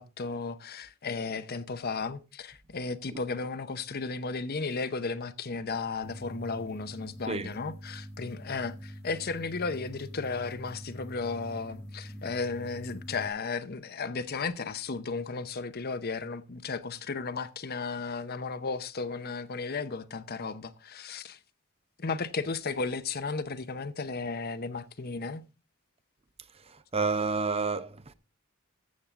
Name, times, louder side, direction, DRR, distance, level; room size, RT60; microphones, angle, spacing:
voice 1, 0.0-21.4 22.0-25.4, left 4 dB, 45° left, 0.7 m, -34 dB
sound 1, 6.0-13.3, equal, 10° left, 1.4 m, -44 dB
voice 2, 26.7-28.1, right 4 dB, 25° right, 0.7 m, -30 dB
14.0 x 7.4 x 3.6 m
head